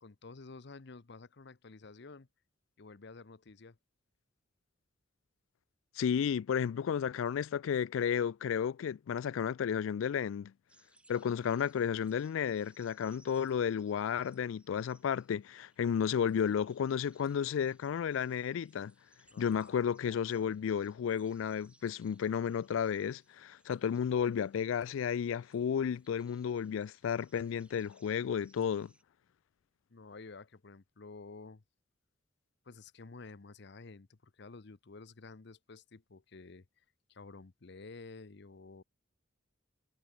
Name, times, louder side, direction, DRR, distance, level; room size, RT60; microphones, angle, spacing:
voice 1, 0.0-2.3 2.8-3.8 19.3-19.8 29.9-31.6 32.6-36.7 37.1-38.8, left 3 dB, 60° left, 0.8 m, -51 dB
voice 2, 6.0-10.5 11.1-18.9 19.4-28.9, left 7 dB, 90° left, 0.3 m, -32 dB
sound 1, 10.7-29.0, right 2 dB, 5° right, 5.9 m, -68 dB
head